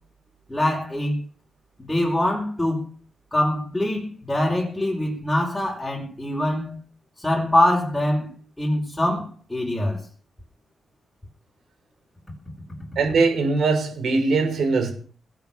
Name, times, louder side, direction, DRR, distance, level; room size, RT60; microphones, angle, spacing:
voice 1, 0.5-1.2 1.8-2.9 3.3-6.8 7.2-8.3 8.6-10.0, left 1 dB, 10° left, 5.7 m, -23 dB
voice 2, 12.9-14.9, right 4 dB, 65° right, 6.6 m, -21 dB
20.0 x 9.5 x 7.1 m
cardioid pair, 120°, 0 cm